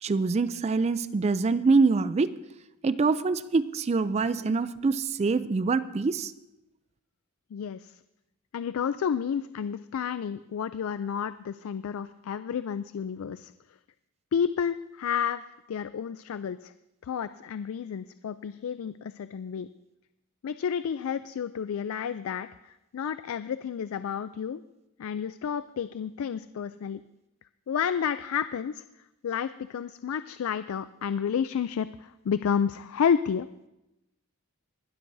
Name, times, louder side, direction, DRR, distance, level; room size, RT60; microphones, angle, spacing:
voice 1, 0.0-2.4 2.8-6.3, right 4 dB, 30° right, 15 dB, 0.3 m, -25 dB
voice 2, 7.5-7.9 8.5-13.5 14.3-16.7 17.0-19.7 20.4-24.6 25.0-27.0 27.7-28.8 29.2-33.5, left 7 dB, 75° left, 13 dB, 0.3 m, -31 dB
20.5 x 12.5 x 2.6 m, 0.92 s
head